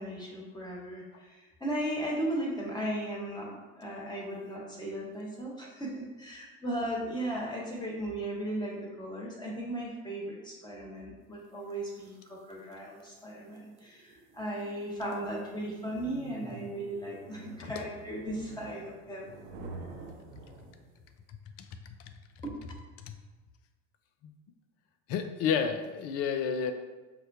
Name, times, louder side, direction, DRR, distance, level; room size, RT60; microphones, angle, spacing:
voice 1, 0.0-19.3 22.4-22.6, right 1 dB, 10° left, -3 dB, 1.3 m, -36 dB
sound 1, 11.7-21.1, right 3 dB, 55° right, 0.8 m, -49 dB
voice 2, 25.1-26.7, left 7 dB, 40° left, 7 dB, 0.5 m, -30 dB
6.4 x 2.2 x 2.7 m, 1.3 s
figure-of-eight pair, 65°, 37 cm